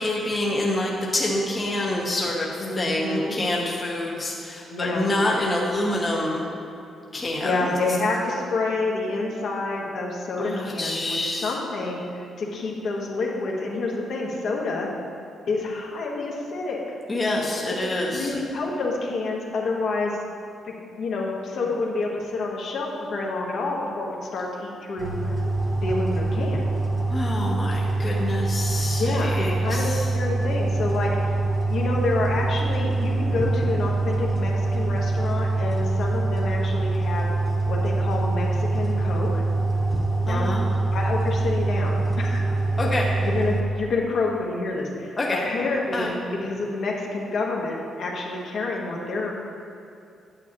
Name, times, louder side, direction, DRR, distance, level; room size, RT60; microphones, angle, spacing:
voice 1, 0.0-6.5 7.1-7.7 10.4-11.5 17.1-18.4 27.1-30.1 40.3-40.6 42.8-43.0 45.2-45.4 45.9-46.1, left 1 dB, 25° left, -2 dB, 0.9 m, -27 dB
voice 2, 2.6-3.4 4.7-5.1 7.4-14.9 15.5-17.0 17.6-17.7 18.1-20.1 20.6-25.3 25.8-26.6 29.0-31.4 31.7-37.3 37.7-39.4 40.2-40.6 40.9-42.5 43.2-45.1 45.4-49.4, left 3 dB, 65° left, -2 dB, 1.3 m, -28 dB
sound 1, 25.0-43.6, right 2 dB, 25° right, 1.0 m, -24 dB
8.9 x 8.3 x 2.9 m, 2.6 s
cardioid pair, 125°, 0 cm